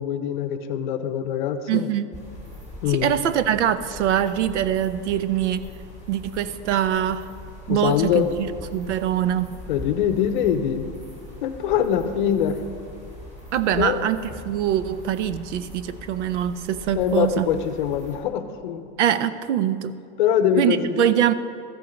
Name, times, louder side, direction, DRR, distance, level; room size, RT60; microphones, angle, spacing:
voice 1, 0.0-1.9 2.8-3.1 7.7-8.3 9.7-10.9 11.4-12.6 13.8-14.0 17.0-18.9 20.2-21.0, left 9 dB, 45° left, 9 dB, 0.7 m, -23 dB
voice 2, 1.7-2.1 2.9-5.6 6.1-7.3 7.7-9.5 13.5-14.2 14.5-17.5 19.0-20.0 20.6-21.3, right 10 dB, 75° right, 14 dB, 0.7 m, -23 dB
sound 1, 2.1-18.2, left 1 dB, 20° right, 2.7 m, -41 dB
13.5 x 8.7 x 5.2 m, 2.4 s
supercardioid pair, 180°, 35 cm